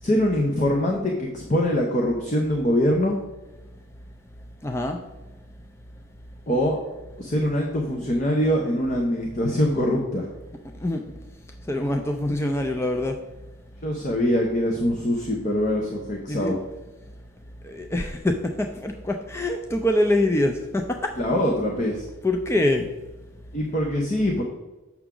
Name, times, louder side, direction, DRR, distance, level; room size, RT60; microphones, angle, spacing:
voice 1, 0.0-3.2 6.5-6.8 7.2-10.3 13.8-16.6 21.2-22.0 23.5-24.4, equal, 35° left, 1 dB, 0.8 m, -23 dB
voice 2, 4.6-5.0 10.8-11.0 11.7-13.2 16.3-16.5 17.6-20.8 22.2-22.9, left 1 dB, 10° left, 4 dB, 0.3 m, -24 dB
7.0 x 5.9 x 3.7 m, 1.1 s
head